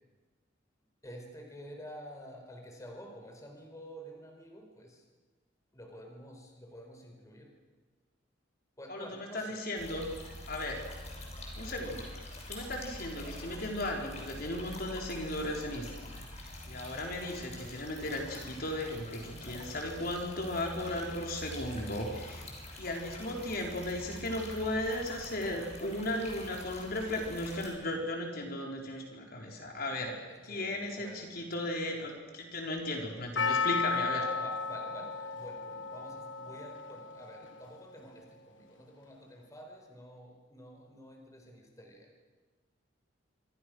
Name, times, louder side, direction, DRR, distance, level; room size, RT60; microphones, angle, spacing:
voice 1, 1.0-5.0 5.7-7.5 8.8-9.6 30.3-31.3 33.8-42.1, equal, 20° left, 3 dB, 4.3 m, -49 dB
voice 2, 8.9-10.1 10.5-10.8 11.6-12.1 12.5-22.5 22.8-30.1 30.4-34.2, left 1 dB, 55° left, 1 dB, 4.4 m, -36 dB
sound 1, 9.8-27.7, left 1 dB, 40° left, 6.4 m, -45 dB
Percussion, 33.4-37.7 38.0-38.1, left 5 dB, 85° left, 1.5 m, -34 dB
27.0 x 24.5 x 6.4 m, 1.3 s
head